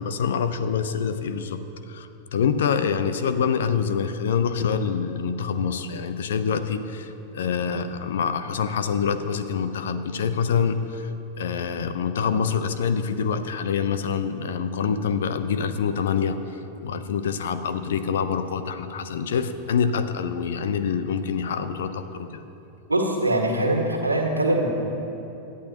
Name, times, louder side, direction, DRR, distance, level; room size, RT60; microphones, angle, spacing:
voice 1, 0.0-11.1 11.4-22.4, left 6 dB, 60° left, 11 dB, 0.7 m, -26 dB
voice 2, 22.9-24.7, right 1 dB, 85° right, 1 dB, 1.7 m, -22 dB
26.5 x 11.0 x 3.0 m, 3.0 s
figure-of-eight pair, 90°, 0 cm